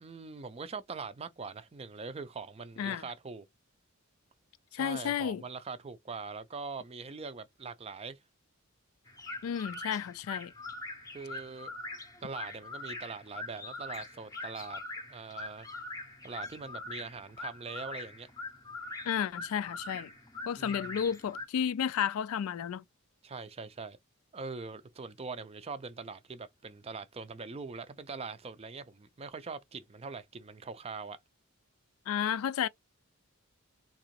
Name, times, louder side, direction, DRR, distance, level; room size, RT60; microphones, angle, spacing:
voice 1, 0.0-3.5 4.7-8.2 11.1-11.7 12.2-14.8 15.1-15.7 16.2-18.3 20.6-21.0 23.2-24.0 24.3-31.2, right 4 dB, 25° right, 0.4 m, -42 dB
voice 2, 4.7-5.4 9.4-10.5 19.1-20.1 20.5-22.8 32.1-32.7, left 8 dB, 75° left, 0.3 m, -32 dB
sound 1, 9.1-21.5, left 2 dB, 15° left, 0.6 m, -43 dB
3.7 x 2.9 x 2.9 m
head